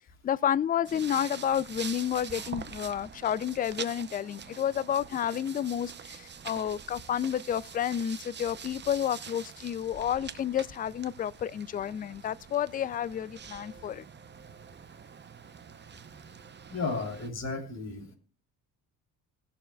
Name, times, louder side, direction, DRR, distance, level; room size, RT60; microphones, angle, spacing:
voice 1, 0.2-14.0, left 9 dB, 25° left, 0.3 m, -30 dB
sound 1, 0.9-17.3, right 7 dB, 30° right, 0.8 m, -45 dB
voice 2, 16.7-18.1, left 3 dB, 40° left, 3.5 m, -34 dB
19.5 x 6.9 x 2.3 m
cardioid pair, 90°, 39 cm